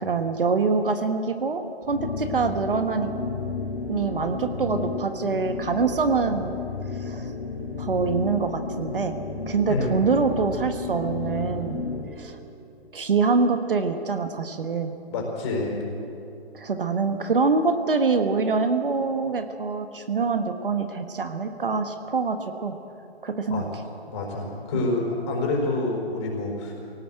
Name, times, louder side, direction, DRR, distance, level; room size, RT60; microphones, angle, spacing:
voice 1, 0.0-3.1 3.9-6.6 6.9-7.3 7.8-9.2 9.5-11.8 12.2-12.4 12.9-14.9 16.5-22.8 23.2-23.6 24.7-24.8, right 4 dB, 55° right, 7 dB, 1.6 m, -25 dB
sound 1, 1.8-12.2, left 4 dB, 60° left, 4.6 m, -32 dB
voice 2, 15.1-15.8 23.5-23.6 24.1-26.7, left 2 dB, 25° left, -1 dB, 5.2 m, -27 dB
23.5 x 18.0 x 7.9 m, 2.7 s
figure-of-eight pair, 135°, 32 cm